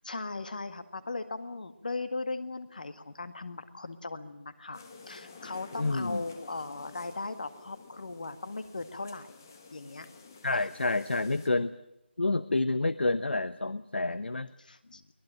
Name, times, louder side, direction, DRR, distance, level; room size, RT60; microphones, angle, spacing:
voice 1, 0.0-9.4 9.7-10.1 10.5-10.7 14.6-15.0, left 3 dB, 45° left, 11 dB, 1.8 m, -38 dB
sound 1, 4.7-11.5, left 4 dB, 15° left, 1.3 m, -51 dB
voice 2, 5.8-6.2 10.4-11.7 12.2-14.5, left 2 dB, 70° left, 15 dB, 0.9 m, -28 dB
23.5 x 19.5 x 9.0 m, 0.84 s
figure-of-eight pair, 175°, 6 cm